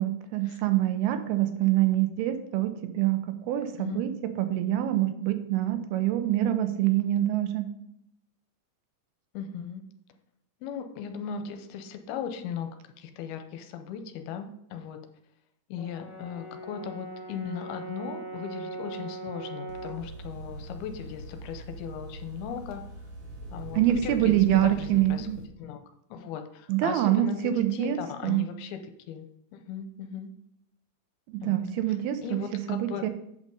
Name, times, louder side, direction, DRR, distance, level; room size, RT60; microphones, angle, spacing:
voice 1, 0.0-7.7 23.8-25.4 26.7-28.0 28.2-28.4 31.3-32.4 32.7-33.1, right 13 dB, 90° right, 8 dB, 2.7 m, -25 dB
voice 2, 9.3-9.8 10.6-12.7 13.0-15.0 15.7-22.8 23.5-25.3 25.6-25.8 26.1-28.8 29.1-29.3 29.5-30.3 31.4-31.6 32.2-33.0, left 7 dB, 90° left, 7 dB, 2.6 m, -37 dB
Brass instrument, 15.8-20.1, right 2 dB, 35° left, 2.2 m, -40 dB
sound 1, 19.7-24.7, right 2 dB, 75° right, 1.6 m, -45 dB
sound 2, 20.0-25.5, equal, 60° left, 2.4 m, -44 dB
8.2 x 5.3 x 5.3 m, 0.75 s
omnidirectional pair, 4.5 m